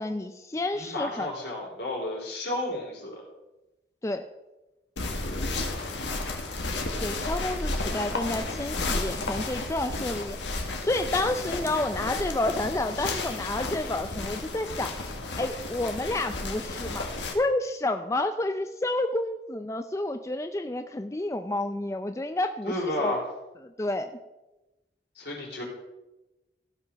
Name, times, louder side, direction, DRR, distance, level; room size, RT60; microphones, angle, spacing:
voice 1, 0.0-1.3 4.0-4.2 7.0-15.0 15.4-17.1 17.3-23.1 23.6-24.1, left 2 dB, 15° left, 8 dB, 0.4 m, -30 dB
voice 2, 0.7-3.2 22.7-23.2 25.2-25.6, left 1 dB, 75° left, -2 dB, 4.1 m, -32 dB
sound 1, 5.0-17.3, left 2 dB, 90° left, 1.6 m, -32 dB
15.5 x 5.8 x 5.7 m, 1.0 s
head